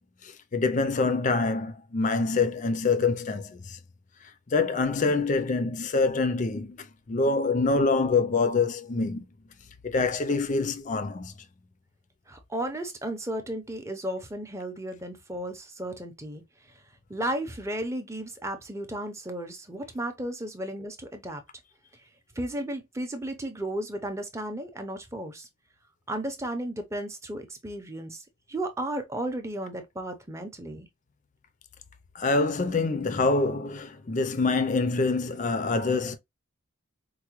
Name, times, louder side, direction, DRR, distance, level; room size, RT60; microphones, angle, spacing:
voice 1, 0.2-3.8 4.5-9.3 9.8-11.3 32.1-36.2, left 3 dB, 35° left, 0.4 m, -25 dB
voice 2, 12.3-16.4 17.1-21.4 22.4-25.5 26.1-30.9, right 1 dB, 15° right, 0.6 m, -34 dB
4.6 x 2.2 x 3.0 m
head